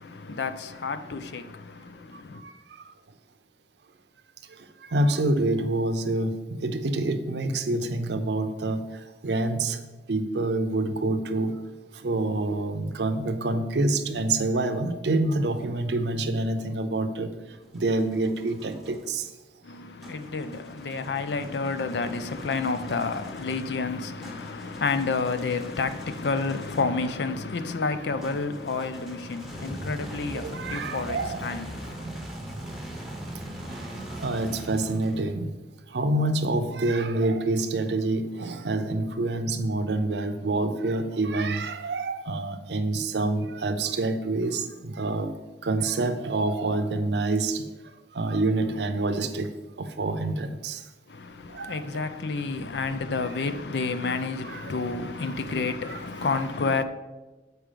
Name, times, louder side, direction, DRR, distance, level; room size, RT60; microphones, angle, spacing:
voice 1, 0.0-2.4 19.6-32.1 51.1-56.8, left 4 dB, 70° left, 0.5 m, -30 dB
voice 2, 4.9-8.8 9.2-9.8 10.1-11.5 12.0-17.3 17.7-19.2 30.3-31.4 34.1-35.5 35.9-45.3 45.6-47.6 48.1-49.5 49.8-50.8 51.5-52.0 54.1-54.2 54.4-54.9 55.2-55.3 55.8-56.0 56.3-56.4, right 2 dB, 70° right, 0.6 m, -27 dB
sound 1, 17.3-19.1 20.0-27.0 28.2-35.5, right 1 dB, ahead, 1.0 m, -41 dB
7.5 x 4.6 x 5.1 m
head